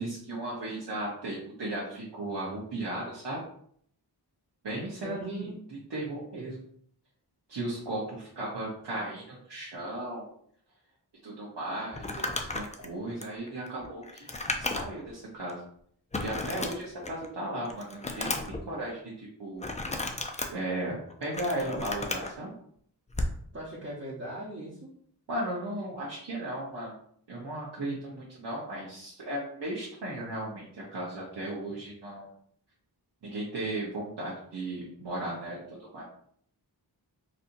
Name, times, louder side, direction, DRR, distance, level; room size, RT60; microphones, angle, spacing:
voice 1, 0.0-3.4 4.6-6.6 7.5-10.3 11.2-14.3 14.6-15.6 16.2-18.3 18.7-19.7 20.5-22.5 25.3-26.9 27.3-32.3 33.2-36.0, right 1 dB, 70° right, -6 dB, 0.9 m, -36 dB
voice 2, 5.0-5.5 23.5-24.9, right 1 dB, 35° right, -7 dB, 0.9 m, -39 dB
Crumpling crinkling, 11.9-15.1 15.5-15.6 16.1-17.3 17.6-18.6 19.6-20.5 21.1-22.3 23.1-23.4, left 2 dB, 20° left, 0.4 m, -34 dB
4.2 x 2.7 x 2.6 m, 0.63 s
wide cardioid pair, 80°, 42 cm